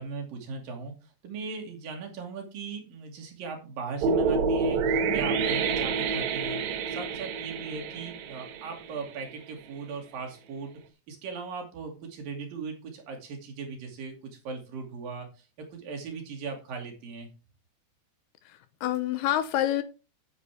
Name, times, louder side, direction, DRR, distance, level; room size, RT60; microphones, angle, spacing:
voice 1, 0.0-6.6 6.9-10.8 11.1-17.3, right 5 dB, 60° right, 3 dB, 4.1 m, -38 dB
sound 1, 4.0-9.2, right 5 dB, 85° right, 1.6 m, -28 dB
voice 2, 18.5-19.8, left 12 dB, 80° left, 11 dB, 2.6 m, -27 dB
10.0 x 9.6 x 3.5 m, 0.32 s
omnidirectional pair, 4.8 m